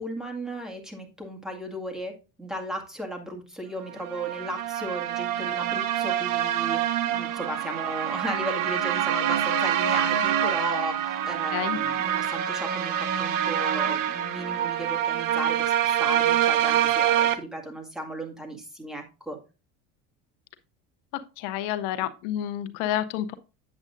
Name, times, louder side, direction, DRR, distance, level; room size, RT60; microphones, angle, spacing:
voice 1, 0.0-19.4, right 1 dB, ahead, 1 dB, 2.0 m, -35 dB
sound 1, 4.0-17.4, right 10 dB, 60° right, 0.9 m, -26 dB
voice 2, 21.4-23.3, left 12 dB, 85° left, 12 dB, 0.8 m, -29 dB
8.7 x 7.3 x 2.5 m, 0.30 s
cardioid pair, 115°, 36 cm